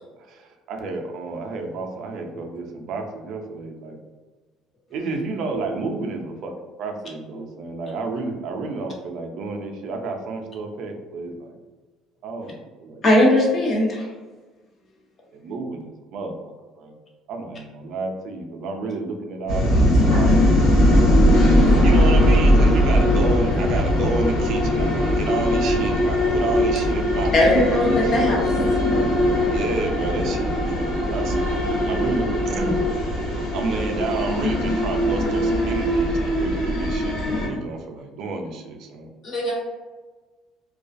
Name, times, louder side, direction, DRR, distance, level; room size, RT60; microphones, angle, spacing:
voice 1, 0.3-4.0 4.9-6.5 6.8-11.6 12.2-13.0 15.3-16.9 17.3-20.3 20.9-21.1 21.8-28.4 29.5-32.8 33.5-39.1, right 3 dB, 65° right, 3 dB, 0.4 m, -30 dB
voice 2, 13.0-14.1 27.3-28.5, left 1 dB, 35° left, -1 dB, 0.7 m, -18 dB
sound 1, 19.5-37.5, equal, 85° left, 0.9 m, -20 dB
voice 3, 20.1-20.4 20.8-21.6 39.2-39.5, right 1 dB, 60° left, -5 dB, 1.2 m, -33 dB
2.3 x 2.2 x 2.5 m, 1.3 s
cardioid pair, 110°, 0 cm